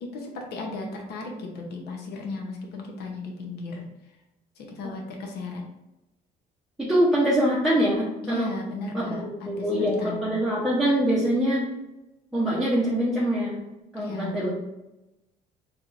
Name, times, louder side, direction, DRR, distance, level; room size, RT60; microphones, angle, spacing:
voice 1, 0.0-3.9 4.6-5.6 8.2-10.3 14.0-14.5, left 3 dB, 75° left, 1 dB, 0.8 m, -35 dB
voice 2, 6.8-8.5 8.9-11.6 12.3-13.6 13.9-14.5, equal, ahead, -7 dB, 0.7 m, -24 dB
3.5 x 3.0 x 2.5 m, 0.96 s
cardioid pair, 110°, 17 cm